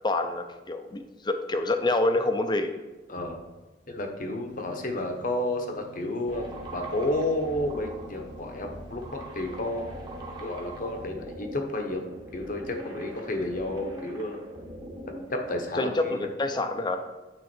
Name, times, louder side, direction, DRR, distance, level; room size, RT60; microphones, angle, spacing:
voice 1, 0.0-2.7 15.8-17.0, left 2 dB, 25° left, 7 dB, 0.6 m, -27 dB
voice 2, 3.1-3.6 3.9-6.5 6.7-9.9 10.4-12.0 12.3-14.4 15.1-16.2, left 1 dB, 50° left, 3 dB, 1.0 m, -31 dB
sound 1, 4.5-11.1, left 1 dB, 90° left, 1.2 m, -50 dB
sound 2, 6.3-15.7, right 1 dB, 25° right, 1.1 m, -41 dB
9.0 x 3.7 x 4.4 m, 1.2 s
head